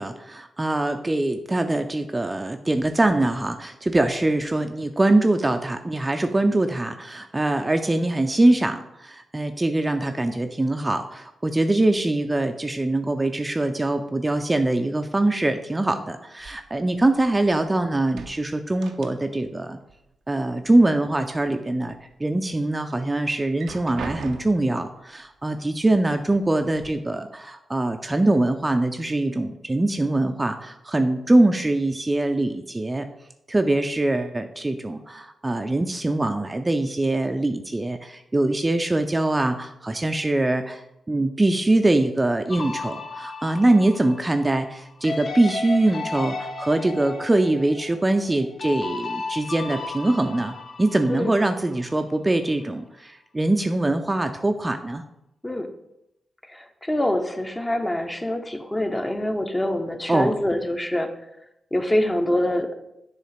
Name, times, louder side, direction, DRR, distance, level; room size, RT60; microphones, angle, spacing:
voice 1, 0.0-19.8 20.3-33.1 33.5-55.0 60.1-60.3, right 2 dB, 25° right, 6 dB, 0.5 m, -23 dB
sound 1, 16.4-17.7 18.0-19.6 19.8-20.8 21.2-22.0 22.5-22.6 23.4-24.8 25.7-25.8 26.2-26.9, right 5 dB, 80° right, 0.5 m, -41 dB
sound 2, 42.5-51.9, left 3 dB, 60° left, 0.9 m, -35 dB
voice 2, 56.5-61.1 61.7-62.7, left 1 dB, 20° left, 5 dB, 1.0 m, -25 dB
7.3 x 3.2 x 5.9 m, 0.84 s
supercardioid pair, 45°, 0 cm